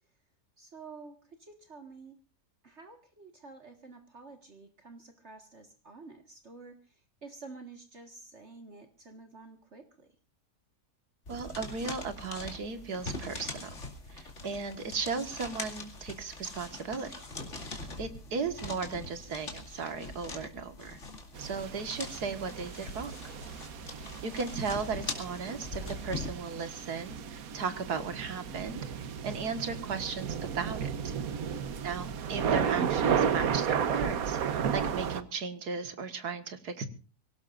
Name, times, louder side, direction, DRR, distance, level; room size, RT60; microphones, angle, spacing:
voice 1, 0.6-2.2 2.6-10.2 23.9-24.4, right 4 dB, 45° right, 6 dB, 1.9 m, -50 dB
sound 1, 11.3-26.3, left 2 dB, 50° left, 2.8 m, -42 dB
voice 2, 11.3-13.7 14.1-17.2 18.0-21.0 21.4-23.1 24.2-31.1 31.8-36.9, right 5 dB, 80° right, 9 dB, 2.2 m, -36 dB
sound 2, 21.3-35.2, right 7 dB, 65° right, 1.4 m, -33 dB
25.0 x 17.5 x 2.5 m, 0.35 s
omnidirectional pair, 1.7 m